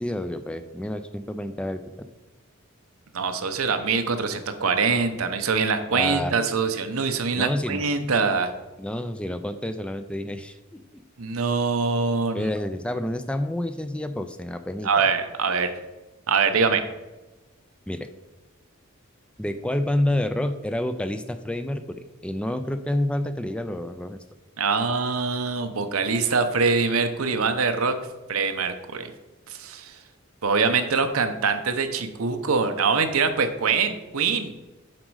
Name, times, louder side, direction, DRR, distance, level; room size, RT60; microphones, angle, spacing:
voice 1, 0.0-1.8 5.9-6.3 7.3-7.8 8.8-11.0 12.3-15.1 17.9-18.1 19.4-24.2, left 1 dB, 5° left, 10 dB, 0.3 m, -29 dB
voice 2, 3.1-8.5 11.2-12.5 14.8-15.7 16.3-16.8 24.6-28.0 28.3-29.1 29.5-30.0 30.4-34.5, right 5 dB, 85° right, 8 dB, 0.8 m, -24 dB
7.5 x 5.2 x 4.7 m, 1.1 s
head